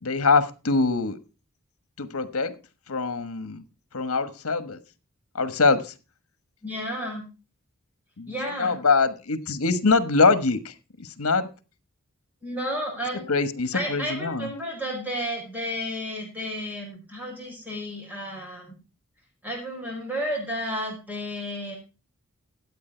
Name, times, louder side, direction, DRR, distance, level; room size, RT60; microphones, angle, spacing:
voice 1, 0.0-1.2 2.0-2.5 2.9-3.6 3.9-4.8 5.3-5.9 8.2-11.5 13.3-14.5, left 4 dB, 80° left, 12 dB, 1.3 m, -23 dB
voice 2, 6.6-7.2 8.3-8.8 12.4-13.3 13.7-18.7 19.4-21.8, equal, 10° right, -1 dB, 5.2 m, -32 dB
13.0 x 8.7 x 4.4 m, 0.32 s
head